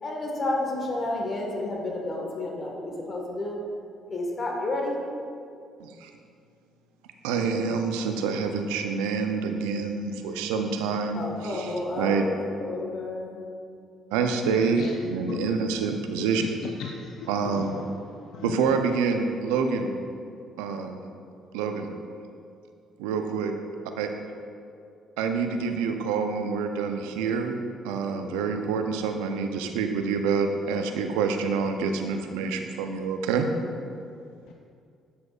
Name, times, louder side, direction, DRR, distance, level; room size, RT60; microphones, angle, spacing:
voice 1, 0.0-3.6 4.1-5.0 11.1-13.4, left 2 dB, 40° left, -1 dB, 1.5 m, -30 dB
voice 2, 7.2-11.2 12.0-12.2 14.1-16.4 17.3-17.8 18.4-19.9 20.6-21.0 21.5-21.9 23.0-23.5 24.0-24.1 25.2-27.6 27.8-33.5, right 5 dB, 80° right, 5 dB, 0.5 m, -27 dB
voice 3, 16.8-17.8 18.3-18.6 34.5-34.6, left 8 dB, 70° left, 1 dB, 0.4 m, -36 dB
8.2 x 7.5 x 2.4 m, 2.4 s
hypercardioid pair, 55°, 0 cm